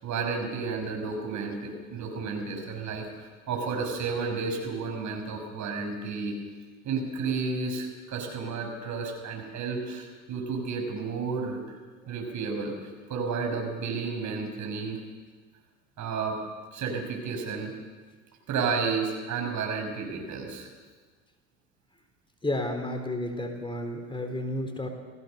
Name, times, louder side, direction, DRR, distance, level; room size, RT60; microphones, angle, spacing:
voice 1, 0.0-6.4 6.8-11.8 12.1-12.7 13.1-15.0 16.0-16.4 16.7-17.7 18.5-20.7, right 4 dB, 45° right, 3 dB, 6.8 m, -32 dB
voice 2, 22.4-24.9, left 1 dB, 15° left, 4 dB, 3.9 m, -31 dB
29.5 x 16.5 x 6.8 m, 1.4 s
hypercardioid pair, 70°, 39 cm